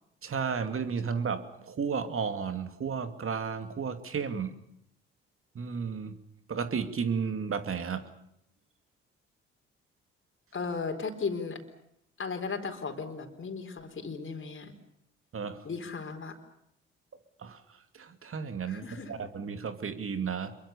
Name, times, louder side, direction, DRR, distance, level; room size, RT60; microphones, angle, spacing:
voice 1, 0.2-4.6 5.5-6.2 6.5-8.1 15.3-15.6 17.4-17.6 17.9-20.5, right 6 dB, 45° right, 9 dB, 2.7 m, -33 dB
voice 2, 10.5-11.6 12.2-14.7 15.6-16.4 18.7-19.1, left 4 dB, 40° left, 3 dB, 4.4 m, -36 dB
27.0 x 22.5 x 7.1 m, 0.75 s
hypercardioid pair, 45°, 30 cm